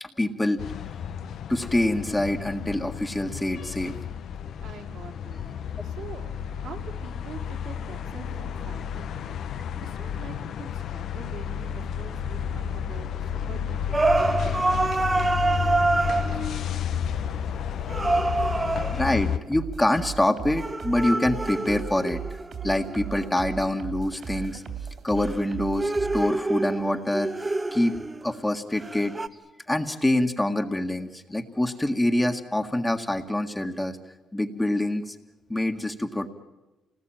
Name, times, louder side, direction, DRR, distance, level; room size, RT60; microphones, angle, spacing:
voice 1, 0.0-0.6 1.5-3.9 18.9-22.2 22.6-24.6 25.0-27.3 27.7-28.0 28.2-29.1 29.7-34.0 34.3-35.2 35.5-36.3, left 1 dB, 10° left, 5 dB, 1.8 m, -25 dB
sound 1, 0.6-19.4, left 8 dB, 70° left, 0.9 m, -32 dB
voice 2, 4.6-17.4, right 6 dB, 75° right, -1 dB, 3.6 m, -46 dB
sound 2, 13.9-16.6 17.9-19.2 20.6-23.7 25.2-28.4 28.8-29.3, right 2 dB, 20° right, 1.1 m, -27 dB
sound 3, 19.5-26.3, right 7 dB, 55° right, 3.1 m, -37 dB
27.5 x 19.0 x 9.0 m, 1.1 s
cardioid pair, 90°, 0 cm